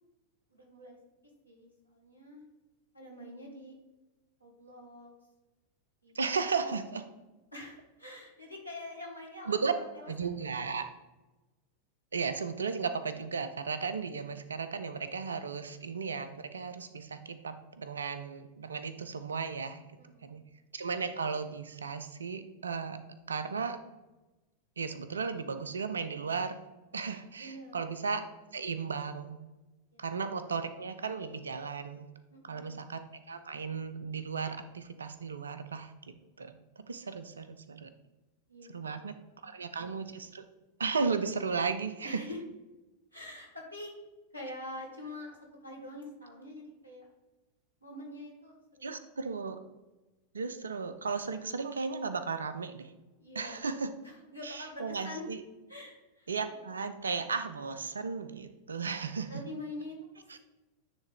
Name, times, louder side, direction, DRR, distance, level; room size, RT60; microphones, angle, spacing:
voice 1, 0.5-1.0 1.4-2.4 2.9-3.7 4.4-5.1 6.0-6.1 6.5-6.8 7.5-10.1 10.4-10.5 20.0-20.3 27.4-27.9 29.9-30.0 32.3-32.9 38.5-39.5 42.0-42.4 43.1-43.9 44.3-47.1 47.8-49.1 53.2-53.7 54.0-55.3 55.7-56.3 59.3-59.9, left 1 dB, 90° left, -2 dB, 1.4 m, -45 dB
voice 2, 6.2-7.0 9.5-9.7 10.1-10.9 12.1-19.8 20.3-20.4 20.7-23.0 23.3-23.8 24.8-26.6 26.9-28.2 28.5-29.4 30.0-32.1 32.4-33.0 33.3-36.6 36.9-37.9 38.7-39.1 39.4-40.4 40.8-42.2 48.8-49.6 50.3-52.9 53.4-53.9 54.4-55.4 56.3-59.3, right 5 dB, 70° right, 11 dB, 0.5 m, -35 dB
9.7 x 3.5 x 3.4 m, 1.1 s
figure-of-eight pair, 90°, 0 cm